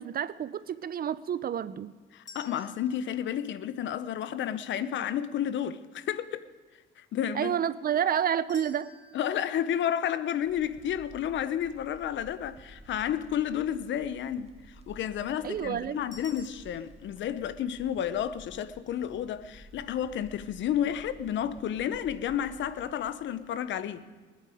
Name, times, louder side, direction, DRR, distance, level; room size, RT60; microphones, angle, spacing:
voice 1, 0.0-1.9 7.3-8.9 15.4-16.0, right 9 dB, 50° right, 0.5 m, -29 dB
voice 2, 2.1-6.4 7.0-7.6 9.1-24.1, left 10 dB, 70° left, 0.7 m, -31 dB
sound 1, 2.3-4.4 8.5-11.6 16.1-16.5, left 3 dB, 35° left, 3.0 m, -53 dB
sound 2, 10.4-23.0, right 1 dB, 30° right, 1.5 m, -53 dB
20.5 x 8.7 x 4.9 m
cardioid pair, 90°, 20 cm